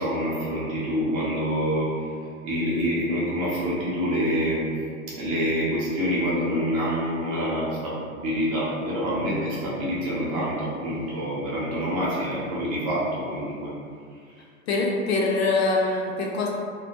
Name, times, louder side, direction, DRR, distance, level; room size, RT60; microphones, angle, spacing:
voice 1, 0.0-1.9 2.4-4.7 5.2-13.7, equal, 25° right, -7 dB, 0.4 m, -26 dB
voice 2, 14.7-16.5, left 3 dB, 50° left, -1 dB, 0.4 m, -23 dB
2.2 x 2.1 x 2.7 m, 2.2 s
figure-of-eight pair, 100°, 41 cm